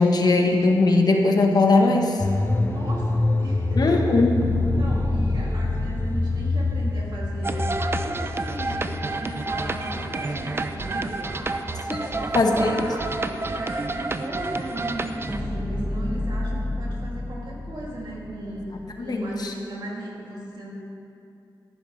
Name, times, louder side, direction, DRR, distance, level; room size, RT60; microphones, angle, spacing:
voice 1, 0.0-2.2 3.8-4.3 11.9-12.0 12.3-12.8 18.7-19.5, left 3 dB, 55° left, 3 dB, 1.1 m, -20 dB
sound 1, 2.2-12.1 12.3-12.4, left 3 dB, 30° left, 0.6 m, -27 dB
voice 2, 2.6-4.1 4.5-11.6 11.9-13.1 13.5-20.7, right 1 dB, 70° right, -4 dB, 2.7 m, -36 dB
sound 2, 4.4-8.7 15.3-19.0, left 1 dB, 15° right, 1.2 m, -31 dB
sound 3, 7.4-15.4, right 3 dB, 30° right, 0.5 m, -29 dB
13.0 x 12.0 x 3.3 m, 2.6 s
cardioid pair, 70°, 8 cm